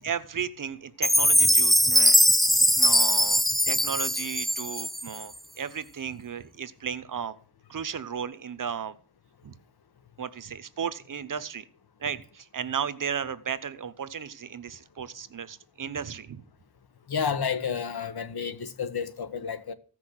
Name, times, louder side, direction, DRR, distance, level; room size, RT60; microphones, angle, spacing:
voice 1, 0.0-2.2 2.7-7.3 7.7-9.0 9.4-9.5 10.2-11.6 12.0-16.4, right 7 dB, 50° right, 1.0 m, -34 dB
Chime, 1.0-5.2, equal, ahead, 0.5 m, -21 dB
voice 2, 17.1-19.7, left 6 dB, 70° left, 1.4 m, -30 dB
15.5 x 6.3 x 7.7 m
wide cardioid pair, 150°, 40 cm